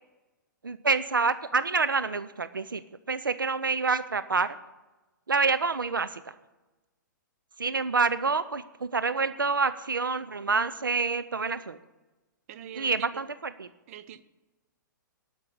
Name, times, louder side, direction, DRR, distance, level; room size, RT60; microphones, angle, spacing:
voice 1, 0.6-2.8 3.1-4.6 5.3-6.2 7.6-11.8 12.8-13.3 13.6-13.7, right 4 dB, 85° right, 13 dB, 0.5 m, -27 dB
voice 2, 12.5-13.2 13.9-14.2, right 10 dB, 45° right, 14 dB, 0.7 m, -43 dB
12.0 x 6.1 x 8.5 m, 1.1 s
figure-of-eight pair, 115°, 11 cm